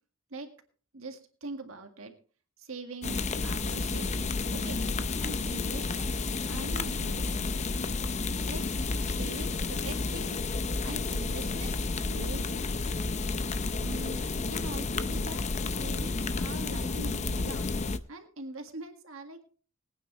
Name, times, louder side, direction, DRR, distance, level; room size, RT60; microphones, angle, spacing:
voice 1, 0.9-2.1 2.6-4.8 5.1-7.6 8.5-8.7 9.0-10.4 10.8-12.6 13.8-17.7 18.1-19.4, right 2 dB, 85° right, 5 dB, 1.8 m, -43 dB
sound 1, 3.0-18.0, left 3 dB, 35° left, 0.6 m, -31 dB
21.5 x 9.3 x 3.1 m, 0.40 s
head